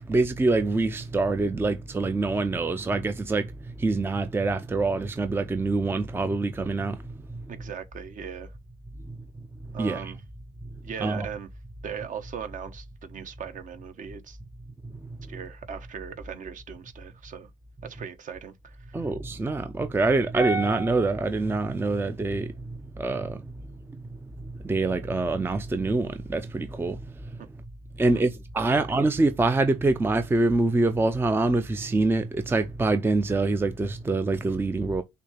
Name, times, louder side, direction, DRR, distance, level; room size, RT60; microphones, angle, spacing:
voice 1, 0.1-3.5 3.8-7.0 9.8-10.1 11.0-11.3 18.9-22.5 23.0-23.4 24.6-27.0 28.0-35.0, right 3 dB, 15° right, 0.5 m, -25 dB
voice 2, 7.5-8.5 9.7-10.2 10.8-11.5 11.8-14.4 15.3-17.5 17.8-19.1 28.0-28.3 28.7-28.8, right 7 dB, 50° right, 1.2 m, -39 dB
6.8 x 2.9 x 5.6 m
cardioid pair, 110°, 17 cm